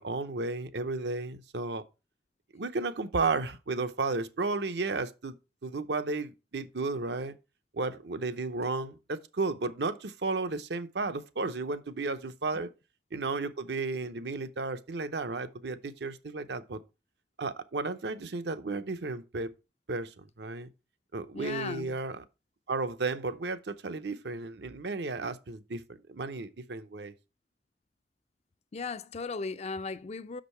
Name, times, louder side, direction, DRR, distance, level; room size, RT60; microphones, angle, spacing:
voice 1, 0.0-1.8 2.5-5.3 5.6-7.3 7.7-12.7 13.1-16.8 17.4-19.5 19.9-20.7 21.1-22.2 22.7-25.8 26.1-27.1, right 3 dB, 70° right, 0.8 m, -33 dB
voice 2, 21.3-22.0 28.7-30.4, left 4 dB, 40° left, 0.4 m, -36 dB
6.4 x 5.1 x 5.5 m
head